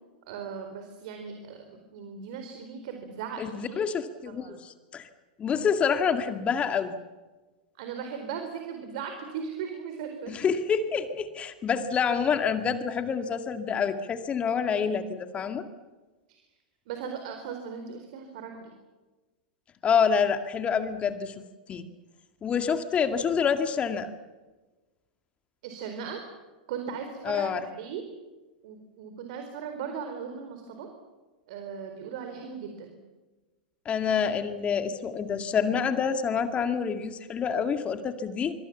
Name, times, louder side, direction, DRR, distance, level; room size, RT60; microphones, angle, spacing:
voice 1, 0.3-3.8 4.4-4.6 7.8-10.3 16.9-18.7 25.6-26.2 26.7-28.0 28.6-30.9 31.5-32.9, right 7 dB, 60° right, 5 dB, 4.2 m, -38 dB
voice 2, 3.4-5.1 5.4-7.0 10.3-15.6 19.8-21.3 21.7-21.8 22.4-24.1 27.2-27.7 33.9-38.5, left 6 dB, 25° left, 8 dB, 2.1 m, -27 dB
25.0 x 25.0 x 7.3 m, 1.2 s
hypercardioid pair, 100°, 5 cm